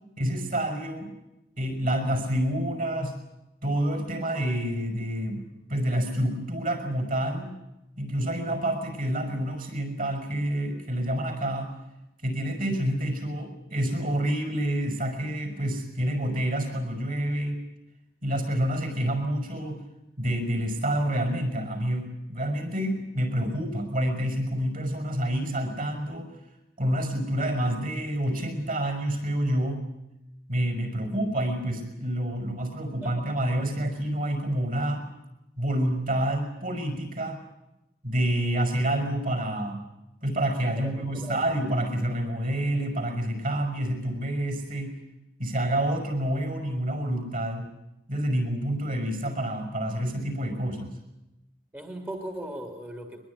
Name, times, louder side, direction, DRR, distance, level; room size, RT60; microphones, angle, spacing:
voice 1, 0.2-1.1 1.6-3.2 3.6-7.5 8.0-11.7 12.2-17.6 18.2-19.8 20.2-26.3 26.8-29.9 30.5-35.0 35.6-37.4 38.0-39.8 40.2-45.0 45.4-47.7 48.1-51.0, right 1 dB, 50° right, 5 dB, 5.8 m, -28 dB
voice 2, 40.8-41.5 51.7-53.2, right 1 dB, 10° right, 3 dB, 1.9 m, -38 dB
22.5 x 21.5 x 9.6 m, 0.93 s
head